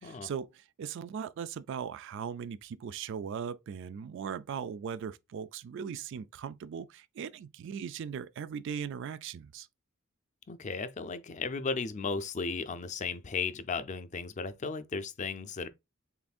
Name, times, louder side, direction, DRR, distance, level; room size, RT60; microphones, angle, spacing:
voice 1, 0.0-9.7, right 7 dB, 65° right, 0.3 m, -39 dB
voice 2, 10.5-15.7, left 4 dB, 35° left, 0.5 m, -35 dB
6.7 x 2.6 x 2.4 m
head